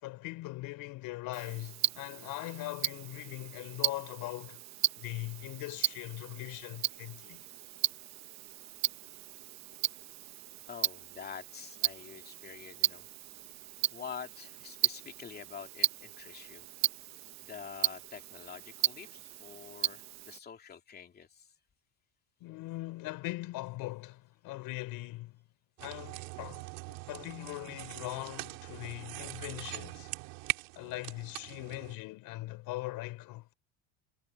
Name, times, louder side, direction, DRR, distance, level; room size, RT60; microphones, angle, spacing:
voice 1, 0.0-4.6 5.0-7.4 22.4-25.4 25.8-30.1 30.7-33.5, left 18 dB, 60° left, 4.8 m, -41 dB
Tick-tock, 1.3-20.4, right 14 dB, 45° right, 1.0 m, -36 dB
voice 2, 10.7-13.0 13.9-16.6 17.5-21.5, left 7 dB, 25° left, 2.8 m, -47 dB
sound 1, 25.8-32.0, right 29 dB, 90° right, 6.2 m, -42 dB
cardioid pair, 155°, 39 cm